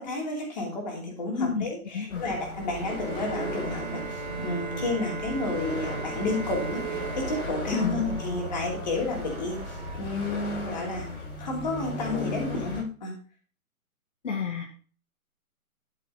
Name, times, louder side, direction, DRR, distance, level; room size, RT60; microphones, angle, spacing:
voice 1, 0.0-13.1, left 2 dB, 30° left, 0 dB, 2.8 m, -31 dB
sound 1, 2.1-12.8, left 1 dB, 75° left, 5.3 m, -36 dB
sound 2, 2.2-10.0, right 5 dB, 15° right, 2.4 m, -42 dB
Bowed string instrument, 2.8-8.8, right 4 dB, 75° right, 1.8 m, -39 dB
voice 2, 7.7-8.0 14.2-14.7, left 6 dB, 55° left, 3 dB, 1.8 m, -29 dB
12.5 x 5.9 x 3.8 m, 0.40 s
hypercardioid pair, 180°, 43 cm